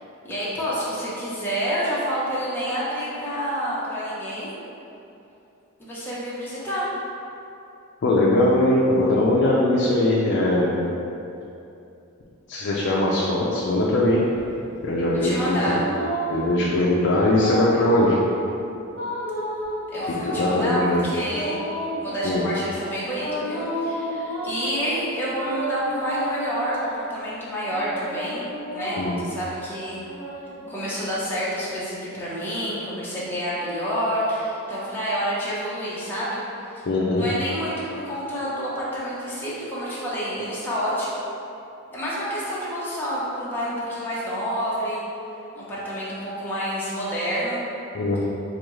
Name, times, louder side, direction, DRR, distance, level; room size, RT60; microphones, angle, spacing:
voice 1, 0.2-4.5 5.8-6.9 15.2-15.8 19.9-21.6 22.0-28.4 28.7-30.0 30.7-36.4 36.7-36.8 37.2-41.2 41.9-45.0 45.5-47.6, equal, 10° left, -9 dB, 0.8 m, -28 dB
voice 2, 8.0-10.8 12.5-14.2 14.8-15.8 16.3-18.2 20.2-21.1 22.2-22.4 29.0-29.2 36.9-37.3 47.9-48.2, left 1 dB, 55° left, -5 dB, 0.4 m, -21 dB
sound 1, 14.3-16.6 17.1-18.3 18.9-20.6 21.2-22.6 23.2-24.7 25.3-27.1 27.7-29.3 29.9-31.3, equal, 75° right, 1.3 m, -32 dB
4.9 x 2.3 x 3.1 m, 2.8 s
head